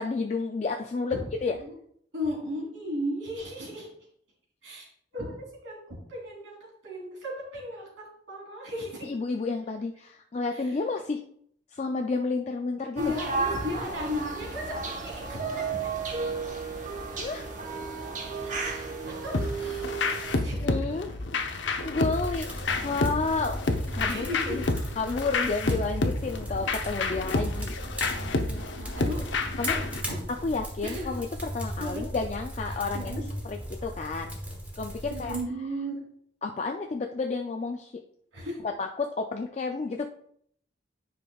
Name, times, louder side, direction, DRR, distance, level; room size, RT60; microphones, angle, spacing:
voice 1, 0.0-1.1 1.4-1.6 9.0-11.2 11.7-13.0 17.1-17.5 20.6-21.1 21.8-23.6 23.9-24.6 25.0-27.8 29.6-29.8 30.4-31.3 31.5-34.4 34.8-35.4 36.4-37.9 38.6-40.1, left 4 dB, 35° left, 3 dB, 0.3 m, -31 dB
voice 2, 2.1-3.9 4.6-4.9 5.1-6.5 6.8-9.1 10.5-10.6 13.0-15.9 18.4-18.7 19.0-20.6 24.1-24.6 25.6-25.7 28.4-29.2 29.6-29.8 30.1-30.5 30.8-31.1 31.8-32.0 32.7-33.2 35.0-36.0 38.3-38.6, equal, 85° right, -3 dB, 2.9 m, -35 dB
sound 1, 13.0-20.4, right 4 dB, 40° right, 1.0 m, -33 dB
sound 2, 19.3-30.0, left 3 dB, 75° left, 0.7 m, -30 dB
sound 3, 22.0-35.4, equal, 10° right, 1.0 m, -37 dB
9.8 x 5.1 x 2.3 m, 0.67 s
head